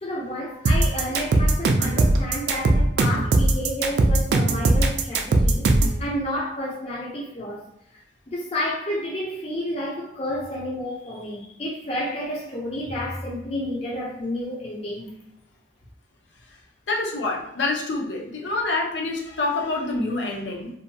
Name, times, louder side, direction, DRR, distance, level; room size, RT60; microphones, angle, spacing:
voice 1, 0.0-7.6 8.3-15.1, left 1 dB, 30° left, -3 dB, 0.5 m, -30 dB
sound 1, 0.7-6.0, right 2 dB, 60° right, 0.3 m, -19 dB
voice 2, 16.9-20.7, left 2 dB, 75° left, 0 dB, 0.6 m, -27 dB
2.7 x 2.1 x 2.7 m, 0.81 s
head